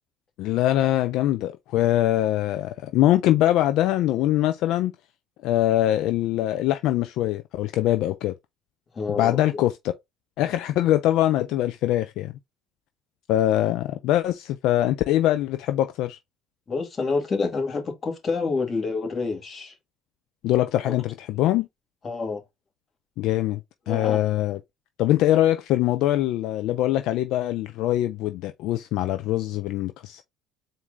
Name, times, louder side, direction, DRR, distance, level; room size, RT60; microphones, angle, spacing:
voice 1, 0.4-4.9 5.4-8.3 9.2-9.9 10.4-12.3 13.3-16.2 20.4-21.7 23.2-23.6 23.9-24.6 25.0-30.2, left 13 dB, 65° left, 0.4 m, -23 dB
voice 2, 9.0-9.6 16.7-19.7 20.8-20.9 22.0-22.4 23.9-24.2, left 4 dB, 35° left, 1.9 m, -28 dB
4.2 x 2.6 x 3.5 m
hypercardioid pair, 75°, 0 cm